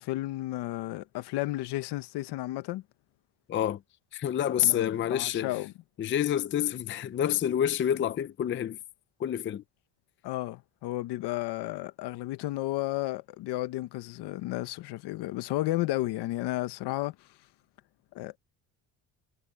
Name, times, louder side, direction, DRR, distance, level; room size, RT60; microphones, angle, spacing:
voice 1, 0.0-2.8 4.6-5.7 10.2-17.1 18.1-18.4, left 17 dB, 70° left, 1.2 m, -33 dB
voice 2, 3.5-3.8 4.1-5.6 6.0-8.8 9.2-9.6, left 10 dB, 30° left, 0.6 m, -28 dB
cardioid pair, 155°, 42 cm